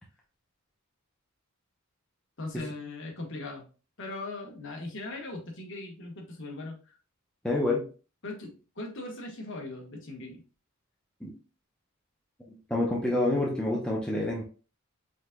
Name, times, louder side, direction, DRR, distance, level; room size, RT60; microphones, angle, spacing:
voice 1, 2.4-3.6 4.0-6.7 8.2-10.4, left 2 dB, 55° left, 1 dB, 1.3 m, -39 dB
voice 2, 7.4-7.8 11.2-11.3 12.7-14.4, left 2 dB, 5° left, -4 dB, 0.8 m, -27 dB
5.1 x 3.8 x 2.3 m, 0.36 s
head